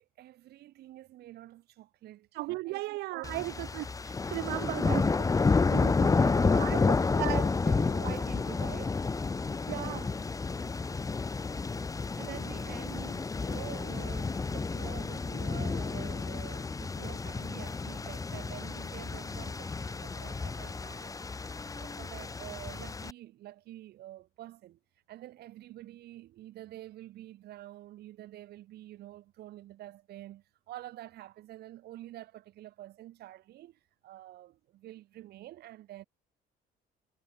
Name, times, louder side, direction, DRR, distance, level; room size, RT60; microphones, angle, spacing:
voice 1, 0.0-2.3 2.7-3.4 6.0-9.0 12.1-21.3 21.7-24.8 25.1-36.0, right 14 dB, 70° right, 3.0 m, -47 dB
voice 2, 2.3-5.4 5.7-6.1 6.6-6.8 7.2-7.5 9.7-10.1, right 21 dB, 90° right, 1.4 m, -36 dB
sound 1, 3.2-23.1, left 4 dB, 20° left, 1.1 m, -30 dB
cardioid pair, 110°, 17 cm